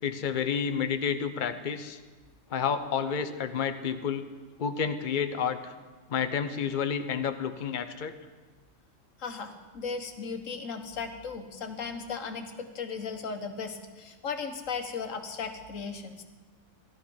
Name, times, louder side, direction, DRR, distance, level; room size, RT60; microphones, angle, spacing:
voice 1, 0.0-2.0 2.5-4.2 4.6-5.7 6.1-8.1, left 7 dB, 45° left, 9 dB, 0.9 m, -30 dB
voice 2, 9.2-16.2, left 5 dB, 85° left, 6 dB, 1.6 m, -36 dB
16.0 x 12.0 x 5.3 m, 1.3 s
omnidirectional pair, 1.3 m